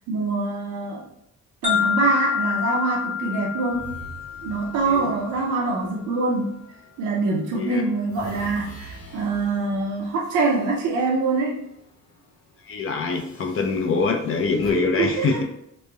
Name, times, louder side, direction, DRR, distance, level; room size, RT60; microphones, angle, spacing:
voice 1, 0.1-1.1 1.6-3.9 4.4-6.6 7.0-11.6 14.7-15.4, right 3 dB, 80° right, -2 dB, 0.5 m, -24 dB
sound 1, 1.6-5.6, left 9 dB, 25° right, 0.7 m, -27 dB
sound 2, 3.6-7.0 7.4-11.8 12.1-12.3 13.1-14.7, equal, 70° left, 0.8 m, -45 dB
voice 2, 12.7-15.4, left 4 dB, 45° left, 2 dB, 0.5 m, -24 dB
3.1 x 2.1 x 2.2 m, 0.76 s
cardioid pair, 90°, 30 cm